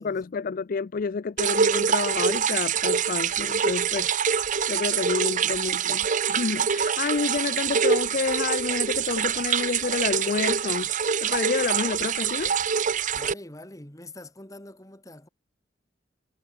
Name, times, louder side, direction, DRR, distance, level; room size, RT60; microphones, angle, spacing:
voice 1, 0.0-12.5, left 5 dB, 50° left, 0.4 m, -29 dB
sound 1, 1.4-13.3, right 7 dB, 45° right, 0.7 m, -25 dB
voice 2, 13.1-15.3, left 1 dB, 20° left, 3.7 m, -44 dB
head